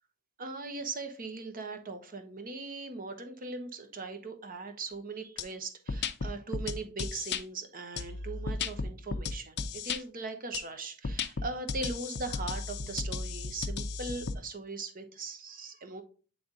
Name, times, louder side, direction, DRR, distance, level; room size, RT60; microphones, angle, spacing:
voice 1, 0.4-16.0, right 3 dB, 40° right, 1.0 m, -40 dB
sound 1, 5.4-5.5 5.9-7.4 8.0-10.0 10.5-10.6 11.0-14.3, left 4 dB, 50° left, 0.5 m, -34 dB
8.8 x 3.4 x 3.8 m
head